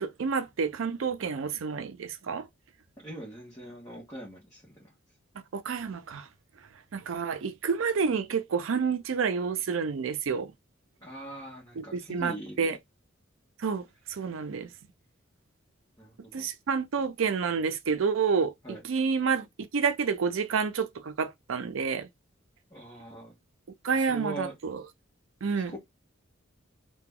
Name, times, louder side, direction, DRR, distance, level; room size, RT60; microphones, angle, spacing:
voice 1, 0.0-2.5 5.5-6.3 6.9-10.5 11.8-12.8 13.6-13.8 14.1-14.7 16.3-18.5 18.8-19.5 19.7-22.1 23.8-24.8 25.4-25.7, right 5 dB, 90° right, 0.5 m, -29 dB
voice 2, 3.0-4.9 11.0-12.7 14.2-14.3 16.0-16.5 18.6-18.8 22.7-23.3 23.9-24.5 25.5-25.8, right 1 dB, 15° left, 1.2 m, -42 dB
2.8 x 2.3 x 3.6 m
head